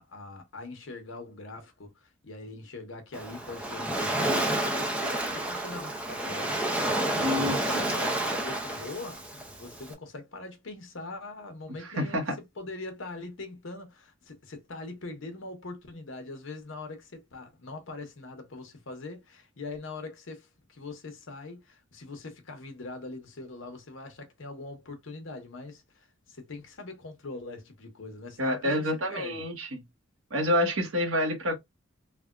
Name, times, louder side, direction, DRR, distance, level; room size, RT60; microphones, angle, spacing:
voice 1, 0.0-12.2 12.6-29.5, left 3 dB, 75° left, 0.9 m, -42 dB
Waves surf, 3.1-9.9, right 1 dB, 5° right, 0.5 m, -30 dB
voice 2, 7.2-7.9 11.8-12.4 28.4-29.8 30.3-31.6, left 1 dB, 85° right, 1.0 m, -28 dB
3.4 x 2.2 x 2.4 m
head